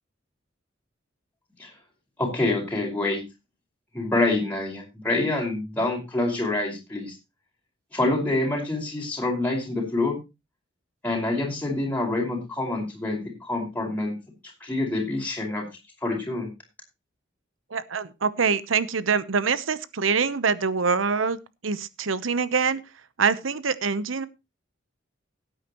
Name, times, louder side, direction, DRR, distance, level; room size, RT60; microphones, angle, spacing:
voice 1, 2.2-3.2 3.9-7.1 7.9-10.2 11.0-14.1 14.6-15.6 16.0-16.5, left 2 dB, 10° left, -3 dB, 5.0 m, -26 dB
voice 2, 17.7-22.8 23.2-24.3, right 5 dB, 90° right, 15 dB, 0.9 m, -25 dB
17.5 x 9.0 x 3.0 m, 0.25 s
head